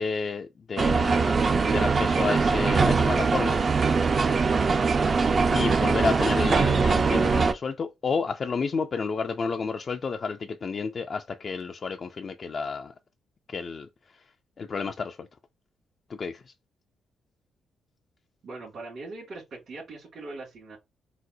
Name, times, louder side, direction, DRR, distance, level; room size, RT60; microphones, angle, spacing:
voice 1, 0.0-3.6 5.5-12.9 13.5-13.9 14.1-14.2 14.6-15.3 16.1-16.4, left 5 dB, 50° left, 0.3 m, -31 dB
sound 1, 0.8-7.5, right 4 dB, 45° right, 0.4 m, -22 dB
voice 2, 18.4-20.8, right 3 dB, 65° right, 2.0 m, -41 dB
3.9 x 2.0 x 2.6 m
cardioid pair, 70°, 0 cm